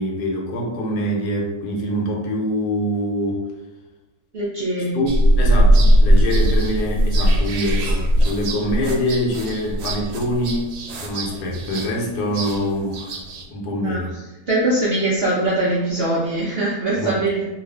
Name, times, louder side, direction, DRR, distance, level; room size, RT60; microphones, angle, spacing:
voice 1, 0.0-3.5 4.9-13.2 13.5-14.2 17.0-17.3, equal, 85° left, -1 dB, 1.3 m, -24 dB
voice 2, 4.3-5.0 13.8-14.0 14.5-17.5, right 2 dB, 60° right, -6 dB, 0.6 m, -22 dB
sound 1, 5.1-13.4, equal, 80° right, 1.1 m, -19 dB
2.8 x 2.5 x 3.4 m, 1.1 s
omnidirectional pair, 1.7 m